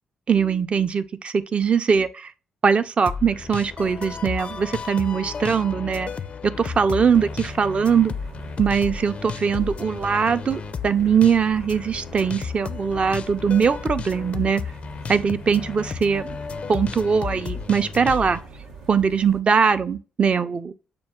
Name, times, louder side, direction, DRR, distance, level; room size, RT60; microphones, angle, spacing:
voice 1, 0.3-2.3 2.6-6.1 6.6-8.1 8.6-14.6 15.1-16.2 16.7-18.4 18.9-20.7, right 6 dB, 45° right, 0.5 m, -21 dB
sound 1, 3.1-18.4, left 6 dB, 50° left, 0.4 m, -33 dB
sound 2, 6.5-19.4, right 4 dB, 90° right, 0.7 m, -43 dB
6.8 x 2.3 x 3.5 m
hypercardioid pair, 40°, 3 cm